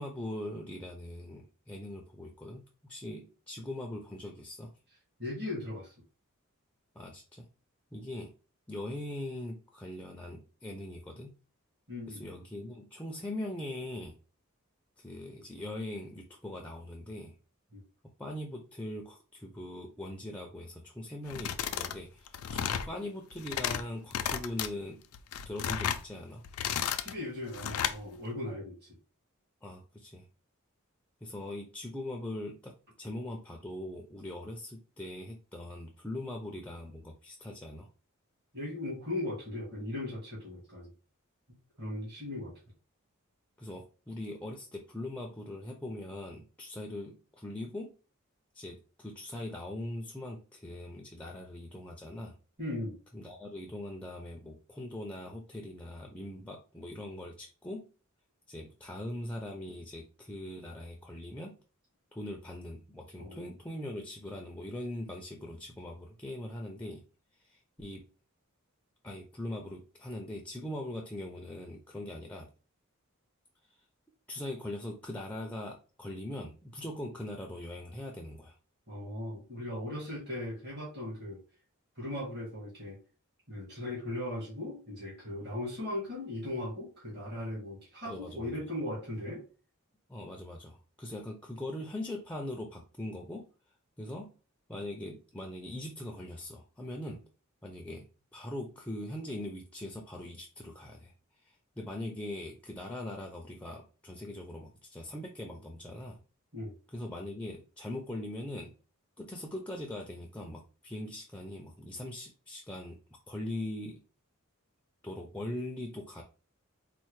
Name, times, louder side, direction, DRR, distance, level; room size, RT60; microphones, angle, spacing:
voice 1, 0.0-4.7 7.0-7.5 7.9-8.3 8.7-11.3 12.1-14.2 15.0-17.4 18.2-25.0 25.5-26.4 29.6-30.3 31.2-37.9 43.6-47.9 48.5-52.3 53.1-57.9 58.5-61.6 62.1-67.0 67.4-68.0 69.0-72.5 73.7-73.8 74.3-78.6 88.1-88.5 90.1-93.5 94.0-94.3 94.7-97.2 97.6-98.1 98.3-101.1 101.4-106.2 106.9-108.7 109.2-113.0 113.3-114.0 115.0-116.2, left 1 dB, 5° left, 1 dB, 0.4 m, -41 dB
voice 2, 5.2-5.9 11.9-12.2 17.7-17.8 26.8-28.8 38.5-40.9 41.8-42.5 52.6-53.0 63.2-63.5 78.9-81.4 82.0-83.0 83.5-89.4 106.5-106.7, left 1 dB, 50° right, -6 dB, 1.5 m, -38 dB
sound 1, 21.3-22.0 22.3-22.9 23.3-23.8 24.1-24.7 25.1-26.0 26.4-27.1 27.5-28.0, left 9 dB, 80° left, 0.4 m, -33 dB
4.3 x 2.1 x 3.1 m, 0.35 s
head